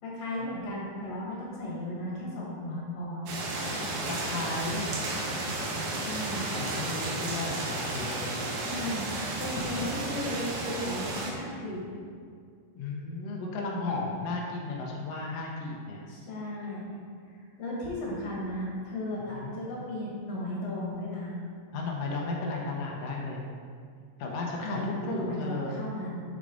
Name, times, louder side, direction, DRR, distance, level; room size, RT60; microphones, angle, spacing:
voice 1, 0.0-3.3 6.0-6.5 8.6-9.1 9.4-11.8 16.1-16.9 17.6-21.4 24.6-26.2, left 1 dB, 55° left, -5 dB, 2.4 m, -35 dB
sound 1, 3.3-11.3, right 2 dB, 85° right, 2.8 m, -33 dB
voice 2, 4.1-4.9 5.3-6.2 6.5-8.4 12.8-16.0 19.3-19.5 21.7-23.4 24.2-25.7, left 3 dB, 80° left, -2 dB, 1.4 m, -34 dB
6.7 x 6.4 x 3.9 m, 2.1 s
omnidirectional pair, 3.9 m